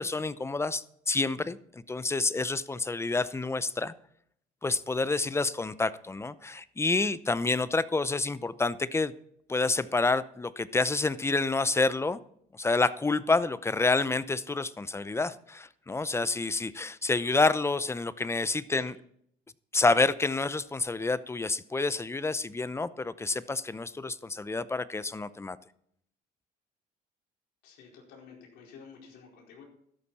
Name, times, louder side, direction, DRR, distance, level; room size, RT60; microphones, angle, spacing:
voice 1, 0.0-3.9 4.6-9.1 9.5-12.2 12.5-19.0 19.7-25.6, left 3 dB, 15° left, 16 dB, 0.6 m, -28 dB
voice 2, 27.6-29.6, left 6 dB, 85° left, -1 dB, 4.6 m, -51 dB
13.0 x 11.5 x 4.2 m, 0.69 s
cardioid pair, 110°, 17 cm